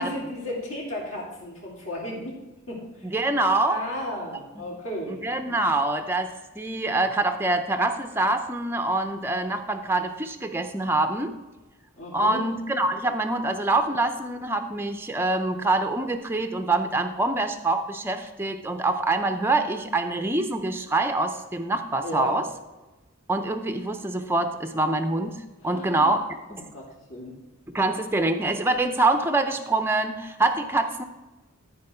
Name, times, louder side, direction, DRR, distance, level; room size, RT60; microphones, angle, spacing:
voice 1, 0.0-2.4 2.7-3.1 3.7-5.2 12.0-12.4 22.0-22.3 25.6-26.2 26.5-27.3, left 1 dB, 60° left, -4 dB, 3.1 m, -34 dB
voice 2, 3.0-3.8 5.1-11.3 12.1-22.5 23.3-26.2 26.5-26.6 27.7-31.0, right 2 dB, 10° right, 6 dB, 0.5 m, -25 dB
13.5 x 4.7 x 4.4 m, 1.1 s
head